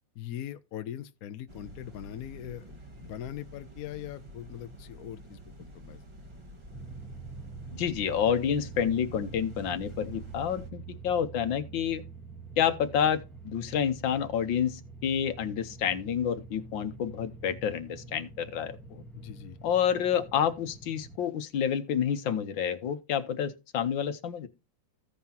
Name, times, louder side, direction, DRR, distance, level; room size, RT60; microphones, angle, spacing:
voice 1, 0.1-6.0 19.1-19.6, left 11 dB, 60° left, 1.0 m, -41 dB
sound 1, 1.5-10.7, equal, 20° right, 1.2 m, -49 dB
sound 2, 6.7-21.2, right 4 dB, ahead, 1.1 m, -46 dB
voice 2, 7.7-12.0 12.6-19.0 19.6-24.5, left 8 dB, 80° left, 1.7 m, -29 dB
15.5 x 5.6 x 2.8 m
omnidirectional pair, 2.0 m